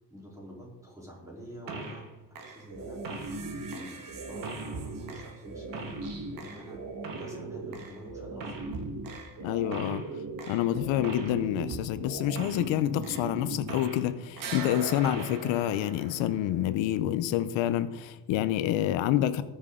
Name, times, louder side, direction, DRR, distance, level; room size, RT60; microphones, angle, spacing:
voice 1, 0.1-2.0 2.5-3.0 3.7-6.8 7.1-8.7, right 1 dB, 5° right, -4 dB, 3.6 m, -46 dB
sound 1, 1.7-2.1 2.4-14.1 14.4-16.6, right 3 dB, 45° right, 1.6 m, -38 dB
voice 2, 9.4-10.0 10.5-19.4, left 12 dB, 85° left, 13 dB, 0.8 m, -28 dB
18.5 x 6.4 x 3.7 m, 1.1 s
cardioid pair, 155°, 44 cm